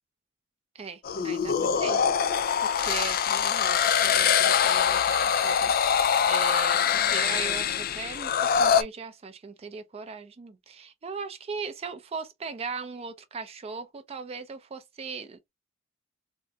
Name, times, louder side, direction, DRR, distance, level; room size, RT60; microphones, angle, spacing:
voice 1, 0.7-2.0 2.6-15.5, right 5 dB, 30° right, 0.4 m, -39 dB
sound 1, 1.0-8.8, left 7 dB, 45° left, 0.4 m, -24 dB
3.6 x 2.1 x 2.6 m
head